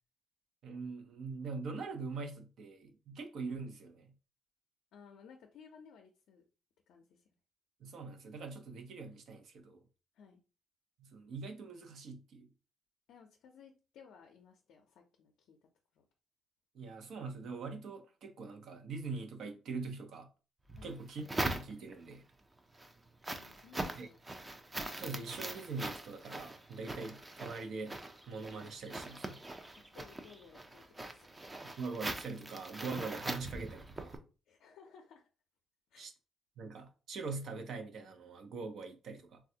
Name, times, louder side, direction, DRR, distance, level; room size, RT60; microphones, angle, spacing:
voice 1, 0.6-4.1 7.8-9.8 11.0-12.5 16.7-20.3 20.8-22.2 24.0-24.1 25.0-29.4 31.6-34.2 36.0-36.1 36.6-39.4, right 4 dB, 70° right, 0.6 m, -43 dB
voice 2, 4.9-6.4 6.9-7.2 10.1-10.4 13.1-15.6 15.9-16.1 20.7-21.0 23.3-24.6 29.8-31.5 34.5-35.3 35.9-36.1, left 6 dB, 80° left, 0.4 m, -58 dB
sound 1, 20.7-22.1 22.6-34.2, right 2 dB, 20° right, 0.5 m, -42 dB
3.3 x 2.3 x 2.7 m
cardioid pair, 90°, 0 cm